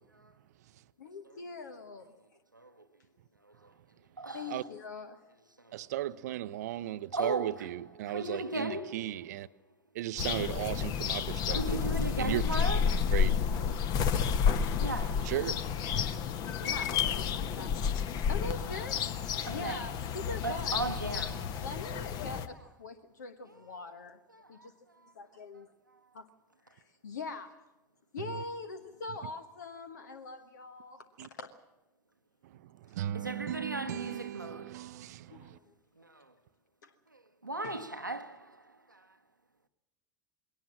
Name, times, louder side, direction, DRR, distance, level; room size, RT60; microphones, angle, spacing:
voice 1, 1.0-2.1 4.3-5.2 16.5-17.9 18.3-19.1 19.5-20.9 21.6-24.2 24.5-24.7 25.1-25.7 26.1-26.3 26.6-27.6 28.1-31.5 35.3-35.7 36.8-36.9 37.6-37.8, left 3 dB, 70° left, 1.3 m, -43 dB
voice 2, 4.2-4.7 5.6-5.8 7.1-9.2 11.5-13.3 13.6-14.1 14.8-15.5 15.8-15.9 17.5-17.6 19.5-19.9 20.4-21.7 23.6-23.9 24.3-24.7 33.1-34.8 36.0-36.2 37.1-38.6 38.9-39.0, right 2 dB, 90° right, 1.0 m, -38 dB
voice 3, 5.7-9.5 9.9-11.8 12.2-12.4 13.1-13.4 15.2-15.6 19.5-19.8 28.2-28.4 31.2-31.3 32.4-35.6, right 13 dB, 60° right, 0.7 m, -36 dB
sound 1, 10.2-22.5, left 7 dB, 40° left, 1.2 m, -31 dB
21.5 x 18.5 x 7.5 m
figure-of-eight pair, 80°, 10 cm